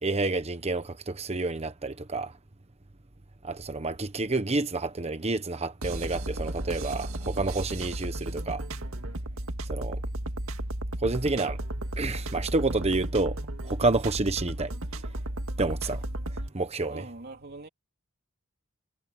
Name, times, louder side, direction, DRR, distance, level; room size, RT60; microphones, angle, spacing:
voice 1, 0.0-2.3 3.4-8.6 9.7-10.0 11.0-11.6 12.0-13.4 13.6-14.7 15.6-16.0 16.5-17.0, right 3 dB, 30° right, 1.1 m, -29 dB
sound 1, 5.8-16.5, right 1 dB, 85° right, 1.9 m, -34 dB
voice 2, 16.9-17.7, right 2 dB, 50° right, 3.5 m, -43 dB
head